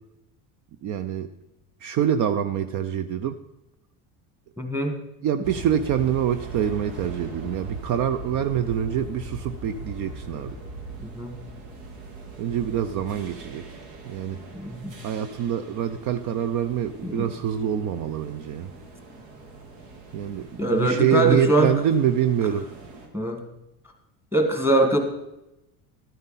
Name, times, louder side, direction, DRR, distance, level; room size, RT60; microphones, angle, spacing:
voice 1, 0.8-1.3 1.8-3.4 5.2-10.6 12.4-13.6 14.1-14.4 15.0-18.7 20.1-22.7, right 9 dB, 55° right, 11 dB, 0.5 m, -25 dB
voice 2, 4.6-5.0 11.2-11.4 14.5-14.9 17.0-17.3 20.6-21.7 23.1-23.4 24.3-25.0, right 2 dB, 5° right, 3 dB, 1.6 m, -22 dB
sound 1, 5.4-23.1, right 3 dB, 85° right, 2.3 m, -40 dB
12.5 x 9.3 x 4.1 m, 0.93 s
cardioid pair, 135°, 38 cm